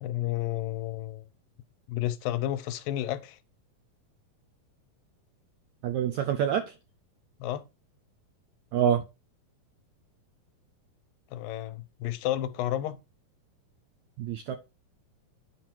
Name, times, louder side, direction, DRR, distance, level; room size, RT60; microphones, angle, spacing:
voice 1, 0.0-1.2 1.9-3.4 7.4-7.6 11.3-13.0, left 13 dB, 80° left, 2.2 m, -31 dB
voice 2, 5.8-6.7 8.7-9.0 14.2-14.6, right 9 dB, 85° right, 1.6 m, -26 dB
9.6 x 4.3 x 4.5 m
omnidirectional pair, 4.1 m